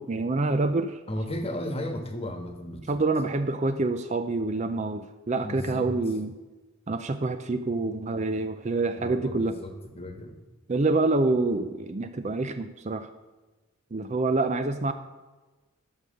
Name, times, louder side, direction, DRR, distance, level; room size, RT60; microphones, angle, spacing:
voice 1, 0.0-1.0 2.9-6.4 6.9-9.6 10.7-13.1 13.9-14.9, right 3 dB, 30° right, 9 dB, 0.5 m, -27 dB
voice 2, 1.1-3.0 5.4-5.9 9.0-10.4, left 1 dB, 25° left, 6 dB, 1.3 m, -35 dB
12.0 x 6.9 x 6.5 m, 1.2 s
head